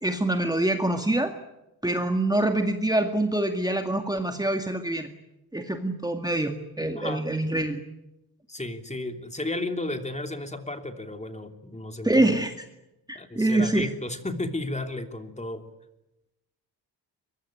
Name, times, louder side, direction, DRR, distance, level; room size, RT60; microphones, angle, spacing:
voice 1, 0.0-1.3 1.8-5.1 5.5-7.8 12.0-12.5 13.1-13.9, right 1 dB, 10° right, 5 dB, 2.0 m, -25 dB
voice 2, 6.9-7.2 8.5-12.3 13.1-15.6, left 2 dB, 15° left, 6 dB, 3.1 m, -33 dB
23.5 x 23.5 x 9.2 m, 0.92 s
wide cardioid pair, 115°, 41 cm